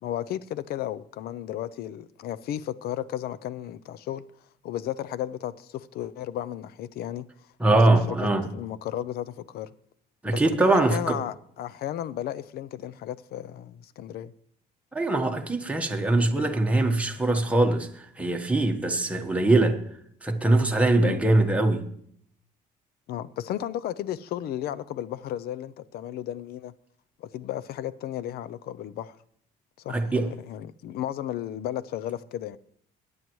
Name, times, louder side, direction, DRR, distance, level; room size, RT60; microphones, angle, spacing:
voice 1, 0.0-4.3 4.6-7.3 7.7-8.2 8.5-9.7 10.3-14.3 21.0-21.2 23.1-26.7 27.2-29.2 29.8-32.6, left 11 dB, 70° left, 0.5 m, -34 dB
voice 2, 7.6-8.5 10.2-11.2 14.9-19.8 20.2-21.9 29.9-30.3, right 2 dB, 5° right, 1.2 m, -22 dB
21.5 x 9.5 x 3.1 m
cardioid pair, 110°, 17 cm